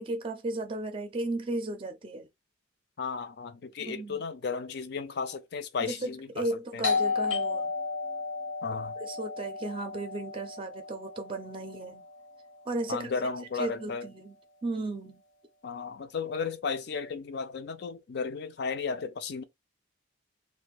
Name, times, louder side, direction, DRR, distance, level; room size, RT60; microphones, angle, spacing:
voice 1, 0.0-2.3 3.8-4.2 5.9-7.7 9.0-12.1 12.7-13.1 13.6-14.4 14.6-15.2, right 2 dB, 25° right, 0.4 m, -35 dB
voice 2, 3.0-6.9 8.6-9.0 12.9-14.1 15.6-19.4, left 5 dB, 60° left, 0.4 m, -34 dB
Doorbell, 6.8-12.2, left 4 dB, 80° left, 0.8 m, -33 dB
2.5 x 2.1 x 3.9 m
head